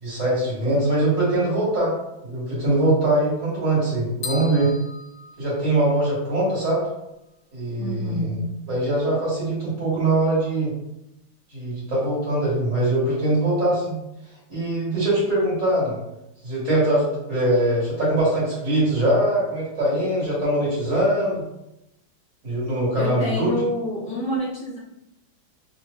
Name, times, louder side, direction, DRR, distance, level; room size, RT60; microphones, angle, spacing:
voice 1, 0.0-1.9 2.2-4.7 5.4-6.8 7.5-8.2 8.7-10.7 11.5-13.9 14.5-16.0 16.4-21.4 22.4-23.6, right 1 dB, 40° right, -7 dB, 1.8 m, -22 dB
sound 1, 4.2-6.2, left 4 dB, 90° left, 0.8 m, -37 dB
voice 2, 7.8-8.5 23.0-24.8, equal, 40° left, -7 dB, 1.3 m, -28 dB
3.6 x 3.0 x 2.5 m, 0.89 s
omnidirectional pair, 2.3 m